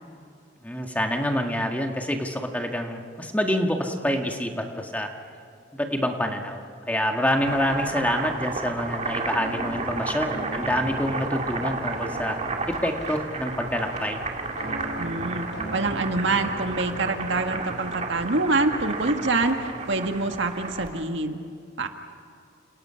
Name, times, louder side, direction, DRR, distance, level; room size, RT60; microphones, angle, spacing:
voice 1, 0.6-5.1 5.7-12.4 12.7-14.2, equal, 10° left, 3 dB, 1.8 m, -27 dB
Boiling, 7.2-21.0, right 3 dB, 35° right, 2.2 m, -32 dB
sound 1, 9.3-13.0 14.6-18.2, equal, 60° left, 6.3 m, -39 dB
voice 2, 15.0-21.4 21.8-21.9, right 3 dB, 70° right, 5 dB, 1.8 m, -26 dB
30.0 x 28.0 x 5.8 m, 2.5 s
head